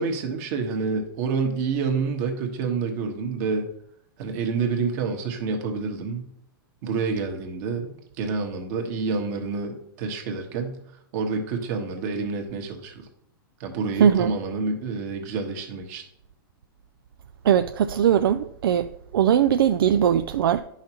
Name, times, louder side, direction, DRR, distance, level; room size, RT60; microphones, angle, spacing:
voice 1, 0.0-3.7 4.2-6.3 6.8-10.8 11.1-13.0 13.6-16.0, right 4 dB, 50° right, 1.5 m, -28 dB
voice 2, 14.0-14.3 17.4-20.6, right 9 dB, 75° right, 0.4 m, -20 dB
9.7 x 5.7 x 3.0 m
hypercardioid pair, 125°, 12 cm